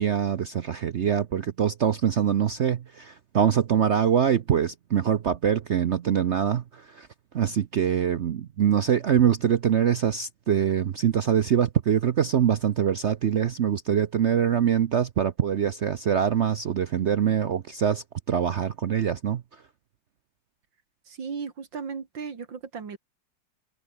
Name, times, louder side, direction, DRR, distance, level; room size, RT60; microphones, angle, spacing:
voice 1, 0.0-7.1 7.3-19.4, right 8 dB, 60° right, 0.7 m, -24 dB
voice 2, 21.1-23.0, right 6 dB, 85° right, 3.2 m, -36 dB
omnidirectional pair, 2.0 m